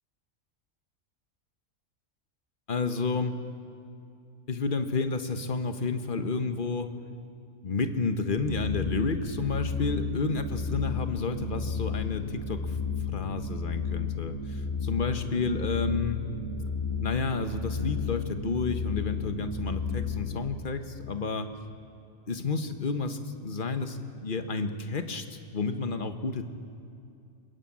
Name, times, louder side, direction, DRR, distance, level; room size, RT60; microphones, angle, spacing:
voice 1, 2.7-3.4 4.5-6.9 7.6-12.8 13.1-16.2 17.0-21.5 22.3-26.4, left 4 dB, 40° left, 8 dB, 1.3 m, -31 dB
sound 1, 8.4-20.5, left 5 dB, 20° left, 1.5 m, -33 dB
21.5 x 20.5 x 8.7 m, 2.5 s
omnidirectional pair, 1.4 m